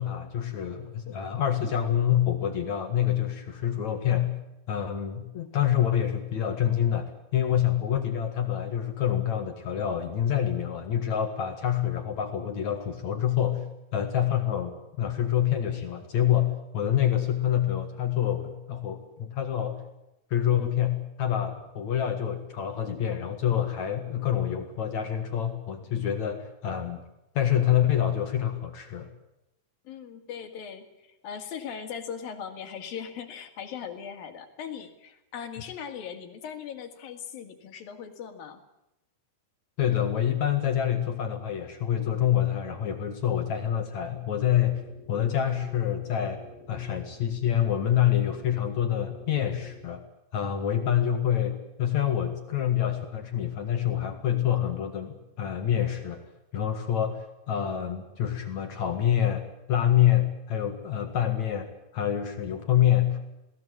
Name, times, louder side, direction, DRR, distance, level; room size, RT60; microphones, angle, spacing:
voice 1, 0.0-4.3 4.7-13.6 13.9-19.8 20.3-27.0 27.3-29.1 39.8-44.8 45.1-50.0 50.3-63.2, left 10 dB, 55° left, 6 dB, 2.8 m, -27 dB
voice 2, 29.9-38.6, left 7 dB, 75° left, 6 dB, 3.9 m, -39 dB
sound 1, 44.4-50.0, equal, 70° right, 8.3 m, -49 dB
21.0 x 18.0 x 9.6 m, 0.89 s
omnidirectional pair, 4.2 m